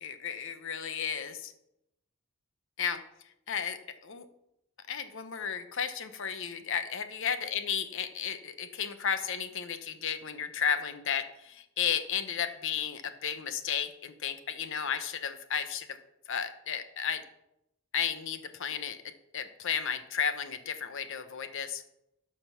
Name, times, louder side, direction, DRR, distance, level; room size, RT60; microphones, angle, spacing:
voice 1, 0.0-1.5 2.8-3.0 3.5-4.3 4.9-16.0 16.3-17.2 17.9-19.0 19.3-21.8, left 7 dB, 60° left, 10 dB, 0.9 m, -33 dB
12.0 x 5.2 x 5.8 m, 0.83 s
head